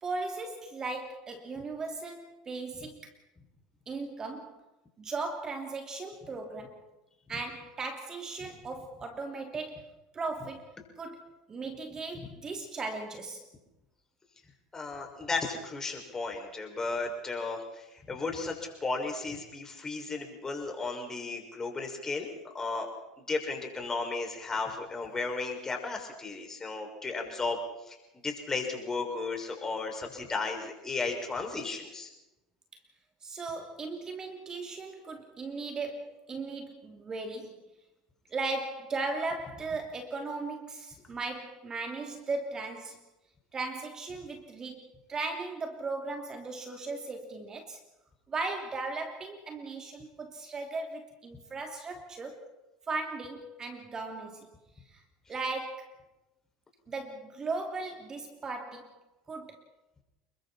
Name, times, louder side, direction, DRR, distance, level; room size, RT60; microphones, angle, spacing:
voice 1, 0.0-3.1 3.9-4.6 5.0-6.8 7.3-13.4 33.2-37.6 38.3-43.0 43.5-44.8 45.1-47.8 48.3-52.5 52.9-54.5 54.9-55.0 55.3-56.0 56.9-59.0 59.3-59.6, right 3 dB, 30° right, 2.9 m, -37 dB
voice 2, 14.7-18.5 18.8-22.3 22.5-22.9 23.2-27.6 27.9-28.0 28.2-32.1, left 3 dB, 20° left, 6.1 m, -34 dB
29.5 x 22.0 x 4.4 m
hypercardioid pair, 85°, 2 cm